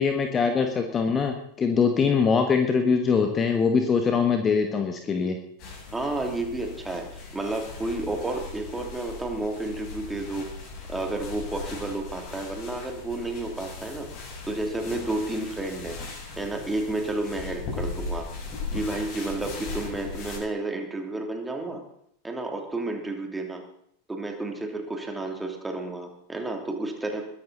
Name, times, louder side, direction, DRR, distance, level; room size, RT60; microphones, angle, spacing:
voice 1, 0.0-5.4, left 5 dB, 20° left, 5 dB, 1.5 m, -23 dB
sound 1, 5.6-20.4, left 4 dB, 40° left, 7.4 m, -38 dB
voice 2, 5.9-10.5 10.9-16.0 16.4-18.3 18.7-21.8 22.2-23.6 24.1-27.2, right 2 dB, 10° right, 3 dB, 2.9 m, -31 dB
22.0 x 12.0 x 4.1 m, 0.70 s
figure-of-eight pair, 90°, 0 cm